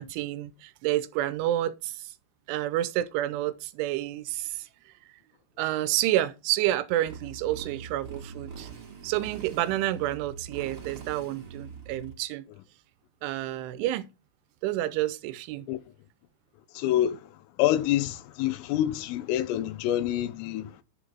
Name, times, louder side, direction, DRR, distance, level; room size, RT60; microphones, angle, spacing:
voice 1, 0.0-2.1 2.5-4.7 5.6-8.7 9.0-12.4 13.2-14.1 14.6-15.7, right 14 dB, 80° right, 3.0 m, -29 dB
Motorcycle, 7.0-12.1, right 6 dB, 35° right, 2.5 m, -43 dB
voice 2, 16.8-17.2 17.6-20.7, left 12 dB, 80° left, 3.4 m, -26 dB
11.0 x 5.0 x 5.8 m
omnidirectional pair, 5.9 m